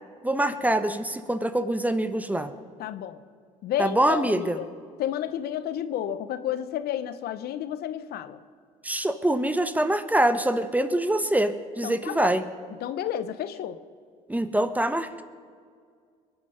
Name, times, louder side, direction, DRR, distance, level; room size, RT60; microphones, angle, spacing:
voice 1, 0.2-2.5 3.8-4.6 8.8-12.4 14.3-15.2, right 1 dB, 10° right, 11 dB, 1.1 m, -24 dB
voice 2, 2.8-3.2 3.6-4.7 5.0-8.4 11.8-12.3 12.8-13.8, left 10 dB, 65° left, 12 dB, 0.8 m, -31 dB
22.5 x 8.7 x 5.6 m, 2.1 s
hypercardioid pair, 60°, 17 cm